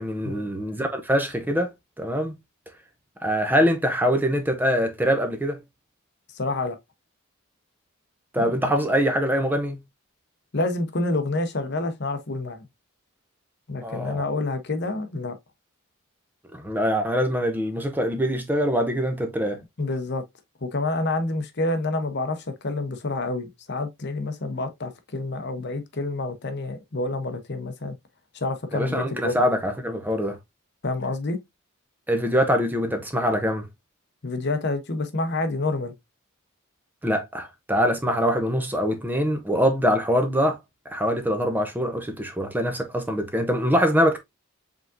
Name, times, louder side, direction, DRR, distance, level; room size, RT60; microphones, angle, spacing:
voice 1, 0.0-1.7 2.0-2.3 3.2-5.6 8.3-9.8 13.8-14.2 16.5-19.6 28.7-30.4 32.1-33.7 37.0-40.6 40.9-44.2, equal, 10° right, 0.6 m, -23 dB
voice 2, 6.3-6.8 8.4-8.5 10.5-12.7 13.7-15.3 19.8-20.2 20.6-27.9 28.3-29.4 30.8-31.4 34.2-35.9, left 2 dB, 50° left, 0.8 m, -28 dB
4.9 x 3.6 x 2.5 m
head